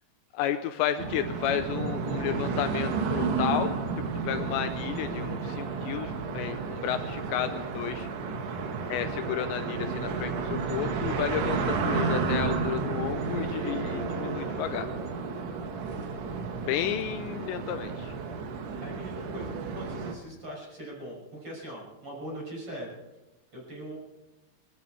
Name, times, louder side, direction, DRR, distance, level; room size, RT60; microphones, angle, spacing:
voice 1, 0.3-3.7 4.3-8.1 8.9-14.9 16.6-18.1, left 11 dB, 80° left, 9 dB, 2.8 m, -32 dB
sound 1, 1.0-20.1, right 4 dB, 70° right, 3.2 m, -32 dB
voice 2, 8.5-8.8 15.5-15.8 18.8-22.9 23.5-24.0, right 1 dB, 30° right, -3 dB, 6.7 m, -41 dB
23.0 x 13.5 x 4.6 m, 0.99 s
omnidirectional pair, 5.3 m